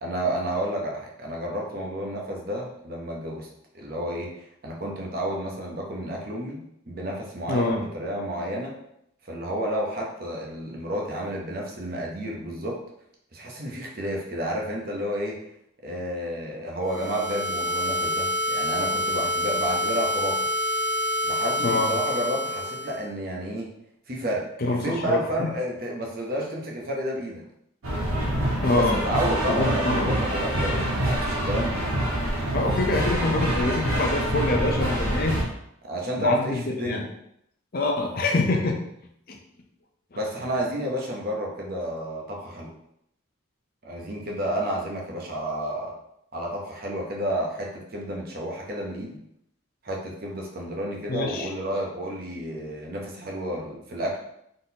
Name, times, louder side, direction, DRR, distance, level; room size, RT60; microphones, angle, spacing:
voice 1, 0.0-3.5 3.7-4.3 4.6-8.7 9.3-12.8 13.3-15.4 15.8-20.4 21.2-23.7 24.1-27.5 28.7-31.8 33.9-34.0 35.8-37.0 40.1-42.7 43.8-45.9 46.3-49.2 49.8-54.2, equal, 45° right, -1 dB, 0.8 m, -31 dB
voice 2, 7.5-7.8 21.6-21.9 24.6-25.5 28.6-29.0 29.5-30.2 32.5-35.4 36.2-37.0 37.7-38.8 39.3-39.4 51.1-51.5, left 2 dB, 45° left, 2 dB, 0.5 m, -25 dB
sound 1, 16.9-23.0, left 1 dB, 65° left, 1.7 m, -27 dB
sound 2, 27.8-35.4, right 1 dB, 85° right, 1.4 m, -26 dB
4.0 x 3.8 x 2.8 m, 0.76 s
head